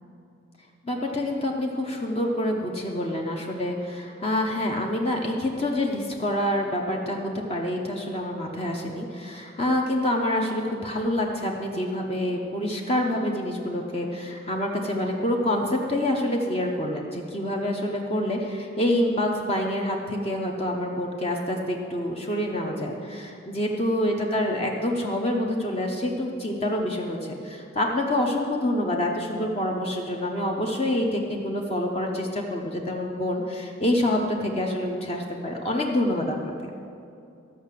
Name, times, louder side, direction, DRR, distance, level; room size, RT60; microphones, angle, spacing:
voice 1, 0.8-36.5, left 1 dB, 30° left, 0 dB, 0.8 m, -27 dB
13.5 x 5.7 x 7.6 m, 2.6 s
head